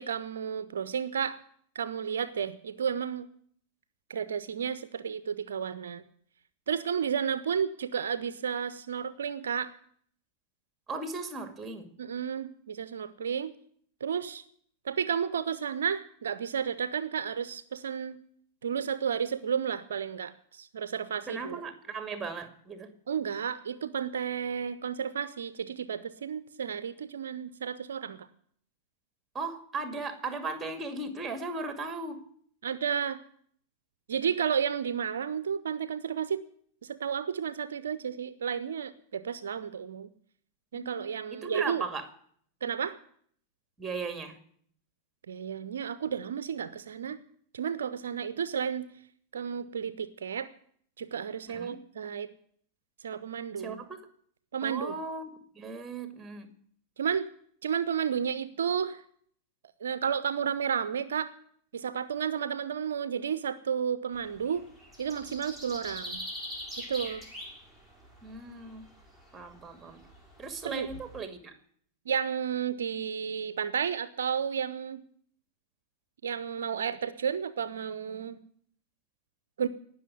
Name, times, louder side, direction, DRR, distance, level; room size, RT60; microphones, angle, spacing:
voice 1, 0.0-1.4 1.7-3.3 4.1-6.0 6.7-9.7 12.0-13.5 14.0-14.4 14.8-18.2 18.6-21.6 23.1-28.3 32.6-33.2 34.1-36.4 36.8-40.1 40.7-41.8 42.6-43.0 45.3-47.2 47.5-48.9 49.3-50.5 51.0-52.3 53.0-53.8 54.5-54.9 57.0-57.3 57.6-59.0 59.8-61.3 61.7-64.7 65.0-66.2 66.8-67.3 70.6-70.9 72.1-75.0 76.2-78.4 79.6-79.7, right 7 dB, 65° right, 14 dB, 0.7 m, -32 dB
voice 2, 10.9-11.9 21.3-22.9 29.3-32.2 40.7-41.1 41.4-42.1 43.8-44.4 51.5-51.8 53.6-54.1 54.6-56.5 68.2-68.8 69.3-70.0 70.4-71.5, right 3 dB, 10° right, 8 dB, 2.2 m, -37 dB
sound 1, 64.1-71.2, equal, 10° left, 6.1 m, -43 dB
18.5 x 6.3 x 9.6 m, 0.62 s
figure-of-eight pair, 90°, 0 cm